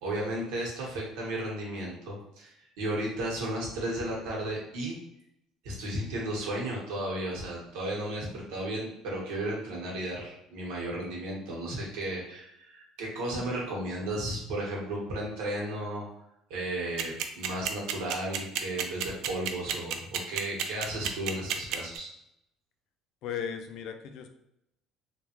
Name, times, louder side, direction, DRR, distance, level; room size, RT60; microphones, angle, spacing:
voice 1, 0.0-5.0 5.6-16.1 16.5-22.1, right 1 dB, 85° right, -3 dB, 1.2 m, -34 dB
sound 1, 17.0-22.0, right 9 dB, 65° right, 0.3 m, -30 dB
voice 2, 23.2-24.3, left 8 dB, 55° left, 6 dB, 0.4 m, -36 dB
3.4 x 2.3 x 2.9 m, 0.81 s
cardioid pair, 165°, 0 cm